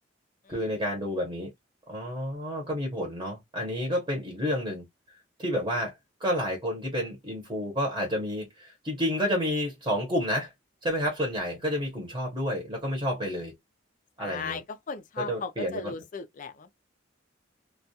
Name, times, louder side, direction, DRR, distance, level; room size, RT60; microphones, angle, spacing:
voice 1, 0.5-1.5 1.9-4.8 5.4-5.9 6.2-10.5 10.8-13.5 14.2-14.6 15.2-15.9, equal, 20° right, 0.8 m, -30 dB
voice 2, 14.2-16.7, left 5 dB, 40° left, 0.4 m, -37 dB
2.3 x 2.2 x 2.7 m
head